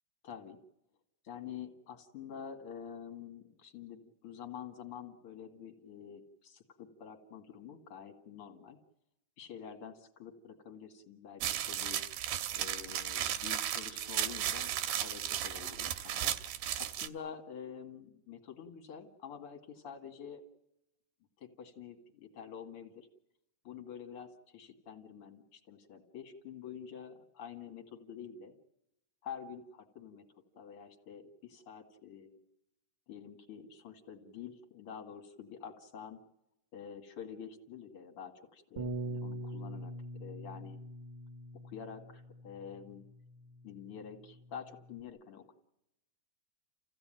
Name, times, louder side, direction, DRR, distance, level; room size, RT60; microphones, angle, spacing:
voice 1, 0.2-0.6 1.2-8.8 9.4-12.0 12.6-20.4 21.4-23.1 23.6-28.5 29.2-29.6 30.0-30.2 30.6-32.4 33.1-36.2 36.7-39.9 40.2-40.8 41.6-43.0 43.6-45.5, left 7 dB, 45° left, 6 dB, 2.5 m, -48 dB
sound 1, 11.4-17.1, right 11 dB, 80° right, 2.8 m, -35 dB
Bass guitar, 38.8-45.0, right 1 dB, 60° right, 1.1 m, -44 dB
29.5 x 16.0 x 9.0 m, 0.88 s
omnidirectional pair, 4.3 m